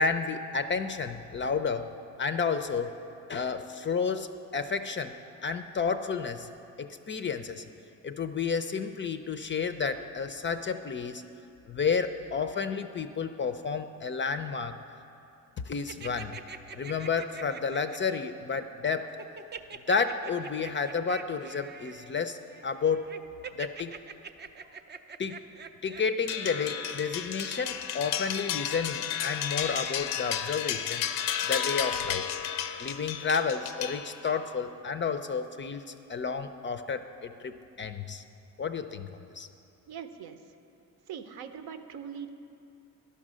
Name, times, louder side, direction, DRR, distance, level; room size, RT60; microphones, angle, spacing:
voice 1, 0.0-1.9 2.2-3.0 3.3-5.1 5.4-6.5 6.8-7.6 8.0-11.2 11.7-14.8 15.6-16.4 16.7-19.2 19.9-23.1 23.5-23.9 25.2-25.4 25.8-31.1 31.4-32.3 32.8-38.2 38.6-39.5, left 5 dB, 30° left, 9 dB, 0.4 m, -31 dB
sound 1, 15.9-18.2 19.2-27.6, right 6 dB, 25° right, 0.4 m, -45 dB
sound 2, 26.3-34.4, left 9 dB, 85° left, 0.6 m, -33 dB
voice 2, 39.9-40.4 41.1-42.3, right 7 dB, 65° right, 8 dB, 0.7 m, -41 dB
11.0 x 5.5 x 6.2 m, 2.7 s
supercardioid pair, 65°, 41 cm